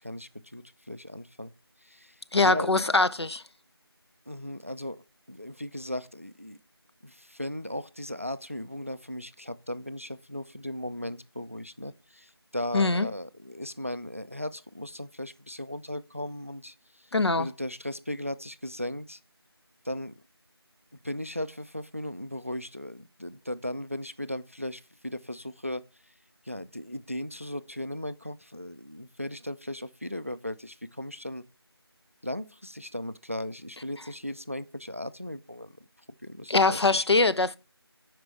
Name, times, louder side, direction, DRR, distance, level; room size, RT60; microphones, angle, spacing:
voice 1, 0.0-1.5 1.8-2.2 2.4-2.8 4.3-5.0 5.3-6.6 7.0-19.2 19.8-20.1 21.0-25.8 26.5-31.4 32.2-35.7 36.2-37.3, left 1 dB, 30° right, 0.4 m, -37 dB
voice 2, 2.3-3.4 12.7-13.1 17.1-17.5 36.5-37.6, left 3 dB, 85° left, 0.7 m, -23 dB
9.0 x 5.1 x 4.6 m
figure-of-eight pair, 175°, 14 cm